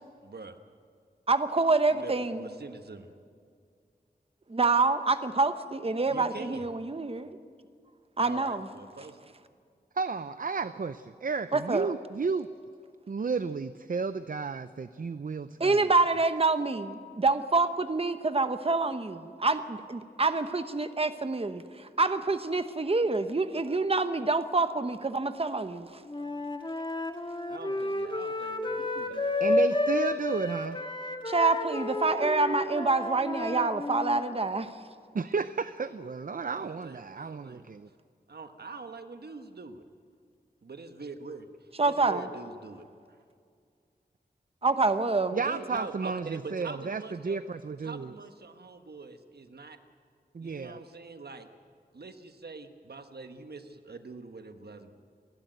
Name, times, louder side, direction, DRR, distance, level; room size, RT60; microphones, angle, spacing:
voice 1, 0.2-0.6 1.9-3.1 6.1-6.6 8.2-9.2 27.5-28.7 29.0-29.1 36.5-37.7 38.3-39.8 40.6-41.5 41.8-43.2 45.4-47.4 47.8-49.8 50.4-51.5 51.9-54.9, right 3 dB, 75° right, 7 dB, 1.4 m, -43 dB
voice 2, 1.3-2.5 4.5-7.4 8.2-8.7 11.5-11.9 15.6-25.9 31.3-34.8 41.8-42.2 44.6-45.4, right 3 dB, 35° right, 10 dB, 1.0 m, -27 dB
voice 3, 9.9-12.5 13.1-15.9 28.8-30.8 35.1-37.9 45.3-48.1 50.3-50.8, right 5 dB, 55° right, 13 dB, 0.6 m, -33 dB
Wind instrument woodwind instrument, 26.1-34.2, left 2 dB, 30° left, 1.6 m, -31 dB
29.0 x 12.0 x 9.3 m, 2.2 s
wide cardioid pair, 75°, 17 cm